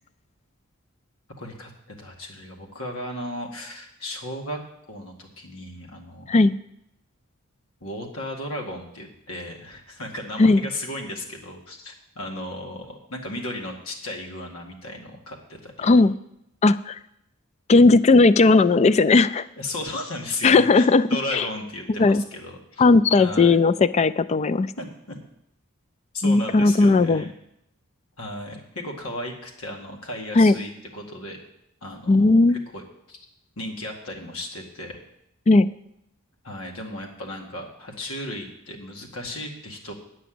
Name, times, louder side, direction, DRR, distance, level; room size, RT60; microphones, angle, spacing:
voice 1, 1.4-4.6 4.9-6.4 7.8-16.0 19.6-22.8 23.2-23.6 24.8-25.2 26.1-27.3 28.2-31.4 31.8-33.2 33.6-35.0 36.4-39.9, left 1 dB, 90° left, 1 dB, 2.0 m, -35 dB
voice 2, 15.8-16.1 16.6-17.0 17.7-19.5 20.4-21.4 22.0-22.2 22.8-24.7 26.2-27.2 30.4-30.6 32.1-32.6 35.5-35.7, left 3 dB, 30° left, 16 dB, 0.3 m, -17 dB
10.0 x 6.1 x 7.7 m, 0.79 s
head